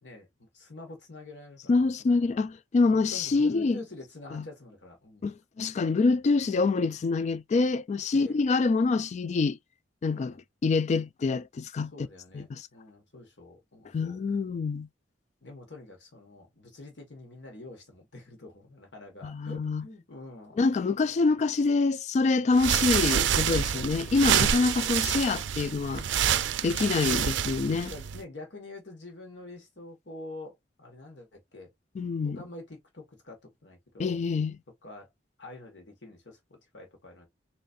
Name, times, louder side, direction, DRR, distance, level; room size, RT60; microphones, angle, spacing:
voice 1, 0.0-2.4 2.9-5.3 8.1-8.4 10.1-10.4 11.9-14.2 15.4-20.6 23.8-24.1 24.6-25.0 27.1-27.3 27.8-31.7 32.2-34.2 34.8-35.1 35.4-37.3, left 2 dB, 70° left, 1.6 m, -46 dB
voice 2, 1.7-3.8 4.3-4.4 5.2-9.6 10.0-10.4 10.6-11.9 12.3-12.7 13.9-14.9 19.2-19.8 20.6-26.1 26.6-27.9 32.0-32.4 34.0-34.6, left 4 dB, 40° left, 0.3 m, -26 dB
sound 1, 22.5-28.2, right 9 dB, 85° right, 0.4 m, -27 dB
4.1 x 3.1 x 2.5 m
head